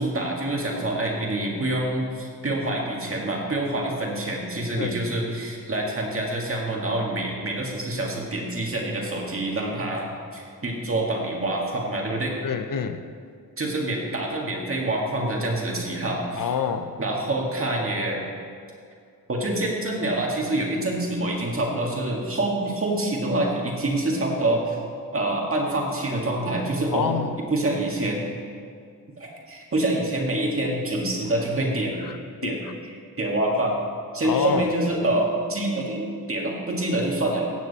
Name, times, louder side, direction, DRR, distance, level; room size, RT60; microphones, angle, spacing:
voice 1, 0.0-12.4 13.6-16.5 17.0-18.3 19.3-24.8 25.1-27.1 27.5-28.3 29.2-32.0 32.4-32.6 33.2-33.8 34.1-37.5, right 1 dB, 40° right, -1 dB, 2.0 m, -26 dB
voice 2, 12.4-13.1 16.4-16.9 26.9-27.4 32.0-32.2 32.4-32.6 34.2-34.7, left 7 dB, 70° left, 9 dB, 0.7 m, -27 dB
15.5 x 9.0 x 4.2 m, 2.3 s
wide cardioid pair, 175°, 34 cm